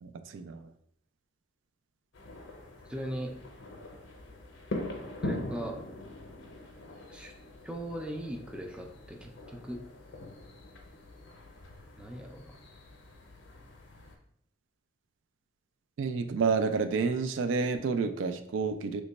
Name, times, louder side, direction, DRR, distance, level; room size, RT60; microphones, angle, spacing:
voice 1, 0.0-0.7 16.0-19.0, right 5 dB, 85° right, 9 dB, 0.3 m, -29 dB
sound 1, 2.1-14.2, left 1 dB, 85° left, 0.6 m, -43 dB
voice 2, 2.9-3.3 5.2-5.8 7.1-7.3 7.6-9.8 12.0-12.6, right 1 dB, 5° right, 2 dB, 0.3 m, -38 dB
3.1 x 2.2 x 3.9 m, 0.68 s
head